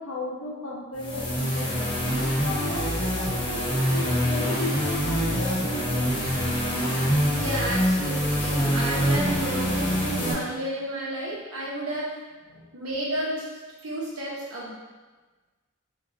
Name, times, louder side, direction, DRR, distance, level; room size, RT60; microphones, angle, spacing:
voice 1, 0.0-2.0 2.4-6.2 12.5-12.6, left 2 dB, 65° left, -2 dB, 0.7 m, -34 dB
sound 1, 1.0-10.3, equal, 25° left, 0.8 m, -25 dB
voice 2, 7.3-12.2 12.7-13.4 13.8-14.7, right 1 dB, 90° right, -5 dB, 1.1 m, -31 dB
3.6 x 2.6 x 3.9 m, 1.3 s
head